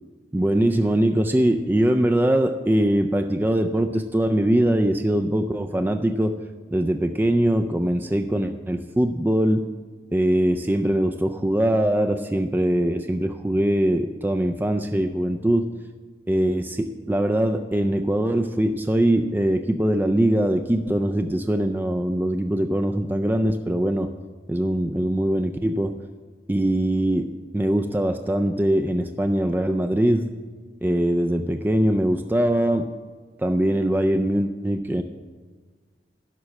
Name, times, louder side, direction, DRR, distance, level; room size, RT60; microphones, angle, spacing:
voice 1, 0.3-6.3 6.7-9.6 10.1-15.7 16.3-24.1 24.5-26.0 26.5-30.3 30.8-32.9 33.4-35.0, right 1 dB, 10° right, 6 dB, 0.3 m, -22 dB
11.0 x 6.2 x 7.3 m, 1.5 s
head